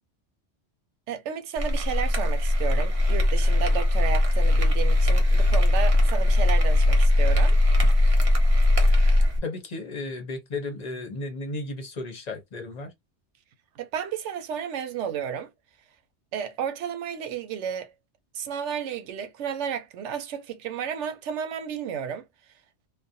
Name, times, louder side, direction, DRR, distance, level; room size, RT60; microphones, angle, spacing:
voice 1, 1.1-7.6 13.8-15.5 16.3-17.9 18.3-22.2, right 8 dB, 85° right, 0.9 m, -32 dB
sound 1, 1.6-9.4, left 1 dB, 35° right, 0.6 m, -20 dB
voice 2, 9.4-12.9, left 2 dB, 40° left, 0.7 m, -34 dB
2.4 x 2.1 x 2.6 m
omnidirectional pair, 1.2 m